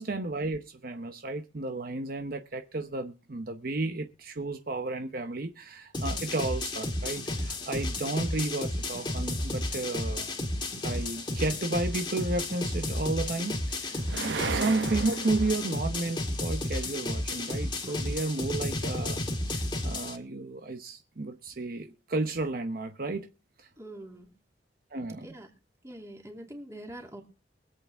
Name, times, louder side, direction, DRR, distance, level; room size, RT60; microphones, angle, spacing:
voice 1, 0.0-10.4 10.8-23.3 23.6-23.7 24.9-25.3, right 2 dB, 55° right, 0.8 m, -33 dB
sound 1, 5.9-20.2, left 1 dB, 25° left, 1.6 m, -32 dB
sound 2, 7.6-7.7 12.8-15.7, right 4 dB, 85° right, 1.0 m, -35 dB
voice 2, 23.8-24.3 25.2-25.5 25.8-27.2, right 1 dB, 15° right, 2.7 m, -44 dB
23.0 x 8.3 x 3.5 m
head